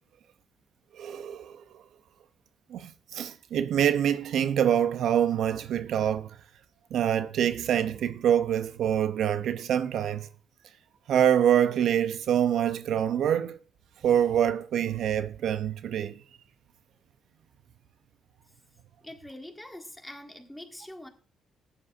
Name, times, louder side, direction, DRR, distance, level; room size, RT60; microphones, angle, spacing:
voice 1, 0.9-1.6 2.7-6.4 6.9-10.3 11.1-13.6 14.0-16.2, right 9 dB, 75° right, 0.5 m, -25 dB
voice 2, 19.0-21.1, left 1 dB, 5° left, 1.8 m, -44 dB
14.5 x 9.8 x 2.5 m
cardioid pair, 90°, 0 cm